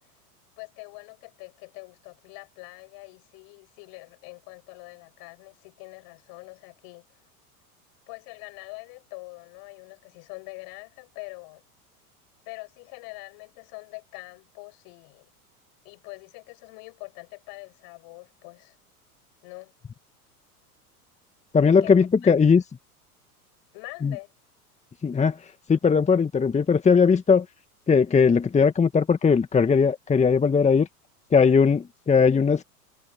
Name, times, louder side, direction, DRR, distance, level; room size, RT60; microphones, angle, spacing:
voice 1, 0.6-7.1 8.1-11.6 12.4-15.3 15.8-18.8 19.4-19.7 21.8-21.9 22.2-22.6 23.7-24.3, left 32 dB, 45° left, 7.9 m, -44 dB
voice 2, 21.5-22.6 24.0-24.2 25.0-27.5 27.9-30.9 31.3-32.6, left 5 dB, 15° left, 2.0 m, -19 dB
figure-of-eight pair, 90°, 46 cm